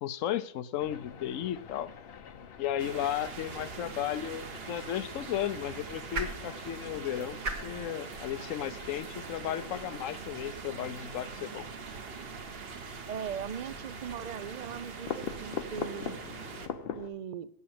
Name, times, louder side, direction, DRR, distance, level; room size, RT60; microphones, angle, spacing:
voice 1, 0.0-1.9 2.6-11.7, left 11 dB, 75° left, 16 dB, 1.0 m, -34 dB
sound 1, 0.8-17.1, left 6 dB, 55° left, 0.8 m, -45 dB
sound 2, 2.8-16.7, right 5 dB, 50° right, 1.2 m, -43 dB
sound 3, 4.3-10.6, right 3 dB, 90° right, 1.8 m, -43 dB
voice 2, 13.1-16.2 17.0-17.5, right 8 dB, 65° right, 15 dB, 0.4 m, -39 dB
8.3 x 8.3 x 8.7 m, 0.75 s
omnidirectional pair, 1.4 m